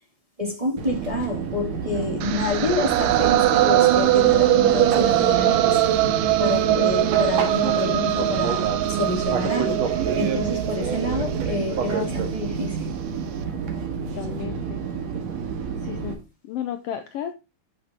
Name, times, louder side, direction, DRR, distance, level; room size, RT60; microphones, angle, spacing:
voice 1, 0.4-5.8 6.4-12.9, left 2 dB, 15° right, 1.8 m, -28 dB
Fixed-wing aircraft airplane, 0.8-16.1, right 6 dB, 60° right, 2.6 m, -29 dB
sound 1, 2.2-12.3, right 13 dB, 90° right, 2.5 m, -21 dB
voice 2, 14.1-14.8 15.8-16.2 16.4-17.3, left 10 dB, 85° left, 1.3 m, -33 dB
11.5 x 5.9 x 3.5 m
omnidirectional pair, 3.6 m